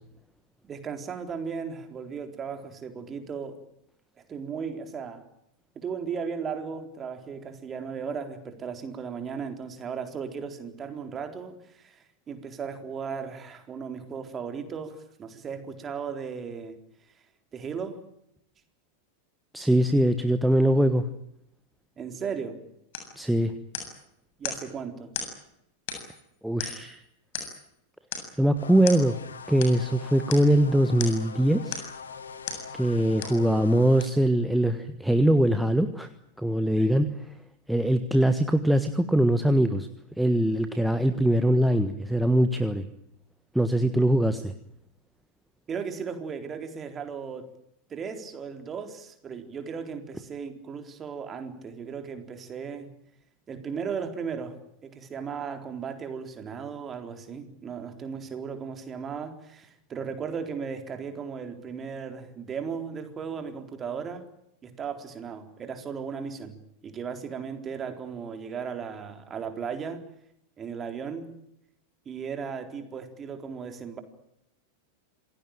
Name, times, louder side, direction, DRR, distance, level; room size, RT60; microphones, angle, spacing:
voice 1, 0.7-3.6 4.3-5.2 5.8-16.8 17.5-18.0 22.0-22.6 24.4-25.1 36.8-36.9 45.7-47.5 47.9-52.9 53.5-54.6 54.8-64.2 64.6-66.6 66.8-70.0 70.6-71.3 72.1-74.0, right 6 dB, 25° right, 6 dB, 4.0 m, -36 dB
voice 2, 19.5-21.0 23.2-23.5 26.4-27.0 28.4-29.2 29.5-31.8 32.7-36.1 36.4-37.1 37.7-39.9 40.2-42.8 43.5-44.5, right 1 dB, ahead, 9 dB, 1.4 m, -22 dB
sound 1, 22.9-23.2 23.7-24.0 24.4-24.7 25.1-25.4 25.9-26.2 26.6-26.9 27.3-27.7 28.1-28.4 28.9-29.1 29.6-29.8 30.3-30.5 31.0-31.3 31.7-32.0 32.5-32.7 33.2-33.4 34.0-34.1, left 6 dB, 50° left, 7.6 m, -36 dB
sound 2, 28.6-34.1, left 5 dB, 70° left, 2.7 m, -42 dB
27.5 x 18.5 x 9.0 m, 0.78 s
figure-of-eight pair, 90°, 0 cm